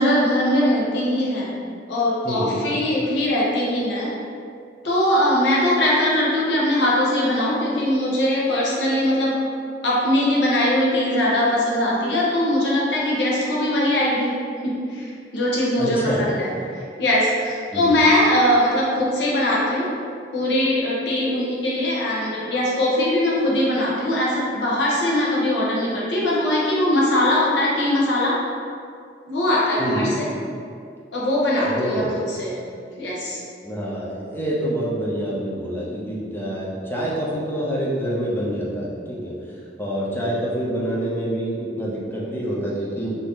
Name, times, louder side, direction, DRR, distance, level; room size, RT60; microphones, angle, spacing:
voice 1, 0.0-1.5 1.9-4.1 4.8-9.4 9.8-14.3 14.6-19.9 20.3-28.4 29.3-30.3 31.1-32.0 32.4-32.5 33.0-33.4, left 1 dB, 75° left, -5 dB, 0.8 m, -21 dB
voice 2, 2.2-2.6 15.8-16.2 17.7-18.0 29.8-30.1 31.6-32.1 33.6-39.3 39.8-43.1, equal, 10° left, -6 dB, 0.6 m, -26 dB
2.7 x 2.6 x 3.5 m, 2.3 s
head